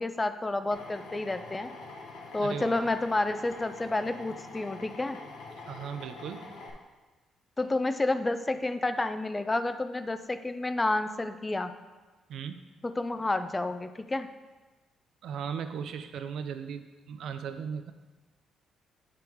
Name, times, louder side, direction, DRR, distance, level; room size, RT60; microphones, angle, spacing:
voice 1, 0.0-1.7 2.3-5.2 7.6-11.7 12.8-14.3, left 2 dB, 20° left, 10 dB, 0.4 m, -30 dB
Drill, 0.7-6.7, left 3 dB, 85° left, 0.9 m, -45 dB
voice 2, 2.4-2.8 5.7-6.5 12.3-12.6 15.2-17.9, right 7 dB, 75° right, 9 dB, 0.4 m, -37 dB
7.8 x 3.7 x 4.5 m, 1.2 s
cardioid pair, 90°, 0 cm